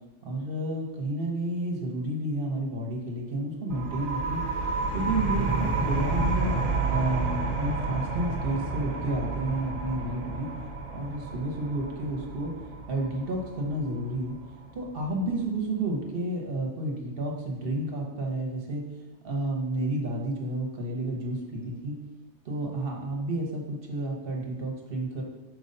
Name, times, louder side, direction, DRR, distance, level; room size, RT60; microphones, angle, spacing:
voice 1, 0.2-4.4 4.9-6.5 6.9-10.5 10.9-12.6 12.9-14.4 14.7-18.8 19.2-22.0 22.4-25.2, right 1 dB, 50° right, 0 dB, 1.2 m, -31 dB
sound 1, 3.7-15.1, right 3 dB, 80° right, 1.2 m, -30 dB
4.7 x 3.9 x 5.3 m, 1.0 s
omnidirectional pair, 1.3 m